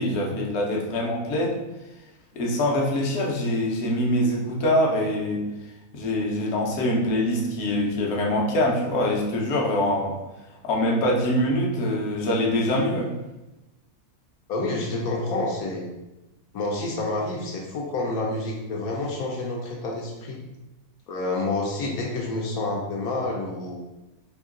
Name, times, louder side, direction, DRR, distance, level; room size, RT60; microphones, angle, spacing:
voice 1, 0.0-1.6 2.3-5.4 5.9-10.2 10.6-13.1, left 1 dB, 60° left, -2 dB, 0.9 m, -24 dB
voice 2, 14.5-15.9 16.5-20.4 21.1-23.8, left 2 dB, 80° left, -1 dB, 1.1 m, -28 dB
3.0 x 2.7 x 3.6 m, 1.0 s
omnidirectional pair, 1.6 m